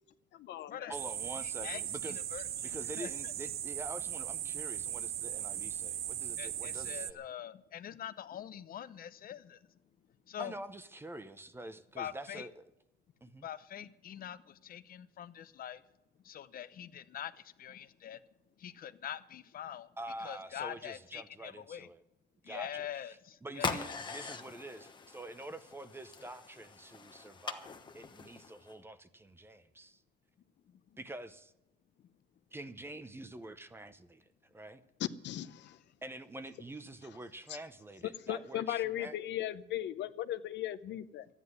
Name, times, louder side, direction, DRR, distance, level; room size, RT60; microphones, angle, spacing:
voice 1, 0.3-0.9 35.2-35.8 37.5-37.6 38.2-41.3, left 13 dB, 85° left, 12 dB, 0.8 m, -37 dB
voice 2, 0.9-7.2 10.4-12.6 13.2-13.5 20.0-22.0 22.4-22.9 23.4-30.0 31.0-31.5 32.5-34.8 36.0-39.1, right 1 dB, 15° right, 12 dB, 0.8 m, -46 dB
sound 1, 0.9-7.1, right 11 dB, 60° right, 0.6 m, -38 dB
voice 3, 1.4-3.3 6.4-9.6 10.3-10.5 12.0-12.5 13.4-15.8 16.2-18.2 18.6-19.9 20.2-21.9 22.4-23.7 30.7-30.8, left 10 dB, 55° left, 14 dB, 0.8 m, -44 dB
sound 2, 23.5-28.7, left 5 dB, 25° left, 1.1 m, -42 dB
13.5 x 10.0 x 9.4 m, 0.84 s
cardioid pair, 155°, 18 cm